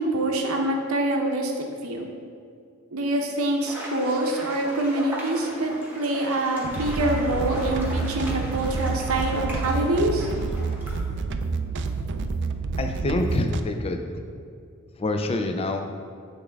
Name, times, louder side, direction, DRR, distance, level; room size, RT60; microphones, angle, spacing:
voice 1, 0.0-1.5 1.8-2.1 2.9-10.3, right 1 dB, 80° right, 2 dB, 0.7 m, -25 dB
sound 1, 3.7-11.0, right 1 dB, 10° right, 1.0 m, -37 dB
sound 2, 6.6-13.6, right 4 dB, 55° right, 0.3 m, -29 dB
voice 2, 12.8-14.0 15.0-15.9, left 2 dB, 30° left, 5 dB, 0.4 m, -26 dB
8.2 x 3.5 x 3.4 m, 2.3 s
head